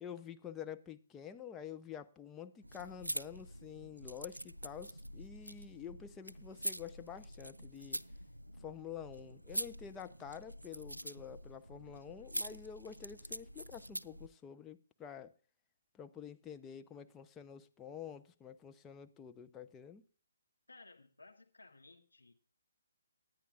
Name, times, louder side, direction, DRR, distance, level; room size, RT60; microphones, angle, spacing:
voice 1, 0.0-8.0 8.6-15.3 15.9-20.0, left 8 dB, 15° left, 0.6 m, -48 dB
sound 1, 2.6-14.3, equal, 90° right, 0.4 m, -45 dB
voice 2, 20.7-22.3, left 3 dB, 75° left, 2.3 m, -58 dB
18.5 x 10.5 x 2.3 m
figure-of-eight pair, 135°, 0 cm